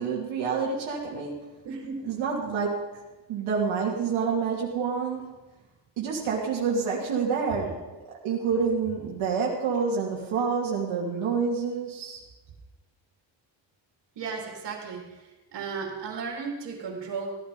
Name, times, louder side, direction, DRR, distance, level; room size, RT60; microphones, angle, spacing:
voice 1, 0.0-1.5 2.1-2.8 3.3-5.4 6.0-12.2, right 5 dB, 90° right, -3 dB, 2.8 m, -28 dB
voice 2, 1.6-2.2 14.2-17.3, right 5 dB, 60° right, 1 dB, 3.8 m, -35 dB
16.5 x 12.0 x 5.3 m, 1.2 s
cardioid pair, 155°, 46 cm